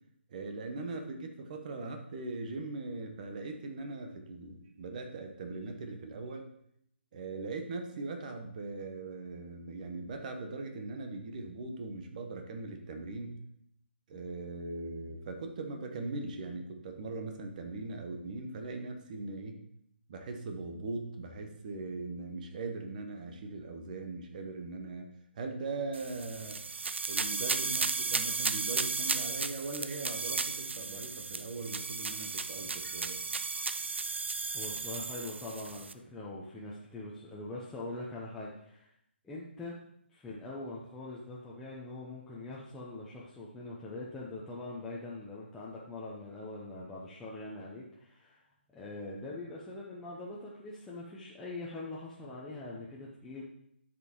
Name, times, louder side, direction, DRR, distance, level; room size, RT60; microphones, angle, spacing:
voice 1, 0.3-6.5 7.1-13.3 14.1-19.6 20.1-25.1 25.4-26.6 27.1-33.2, right 3 dB, 40° right, 5 dB, 1.0 m, -40 dB
sound 1, 25.9-35.9, right 4 dB, 75° right, 0.5 m, -34 dB
voice 2, 34.5-38.9 39.2-39.7 40.1-48.4 48.7-53.4, left 2 dB, 5° left, -6 dB, 0.8 m, -43 dB
12.0 x 5.2 x 3.0 m, 0.72 s
figure-of-eight pair, 145°, 6 cm